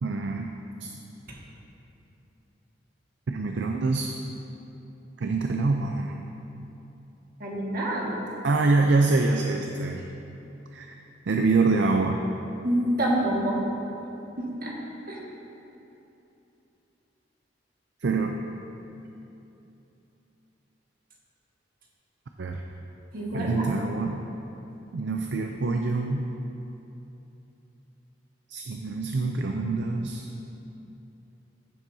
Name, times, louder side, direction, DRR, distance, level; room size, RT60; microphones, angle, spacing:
voice 1, 0.0-0.5 0.8-0.9 3.3-4.1 5.2-6.2 8.4-10.1 10.7-10.9 11.3-12.2 18.0-18.4 22.4-22.6 23.3-24.2 24.9-26.3 28.5-30.2, right 3 dB, 70° right, 3 dB, 0.5 m, -25 dB
voice 2, 7.4-8.2 12.6-13.6 14.4-14.8 15.1-15.2 23.1-23.6, right 1 dB, 55° right, -3 dB, 1.7 m, -27 dB
15.0 x 7.4 x 2.7 m, 2.9 s
head